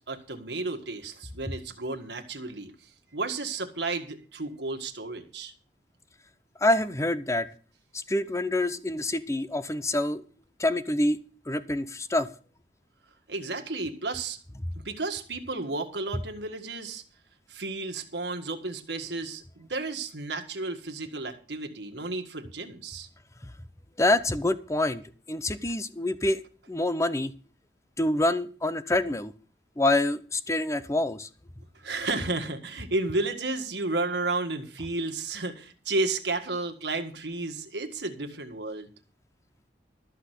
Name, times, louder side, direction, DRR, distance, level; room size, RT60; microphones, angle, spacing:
voice 1, 0.1-2.7 3.1-5.5 13.3-14.4 14.8-17.0 17.5-23.1 31.8-38.9, right 3 dB, 75° right, 6 dB, 1.7 m, -32 dB
voice 2, 6.6-7.5 7.9-10.2 10.6-11.2 11.5-12.3 24.0-25.0 25.3-26.4 26.7-27.3 28.0-29.3 29.8-31.3, left 1 dB, 15° left, 14 dB, 0.7 m, -26 dB
13.5 x 6.1 x 8.2 m, 0.41 s
head